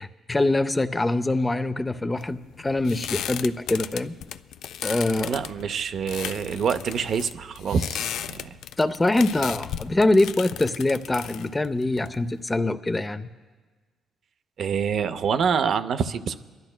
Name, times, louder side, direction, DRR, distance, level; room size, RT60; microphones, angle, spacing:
voice 1, 0.0-4.1 4.8-5.4 8.8-13.3, left 2 dB, 20° left, 12 dB, 0.5 m, -24 dB
sound 1, 2.2-12.6, left 10 dB, 80° left, 0.3 m, -36 dB
voice 2, 5.2-8.1 8.3-8.5 14.6-16.4, right 6 dB, 60° right, 10 dB, 0.5 m, -26 dB
27.5 x 12.0 x 2.2 m, 1.4 s
cardioid pair, 90°, 0 cm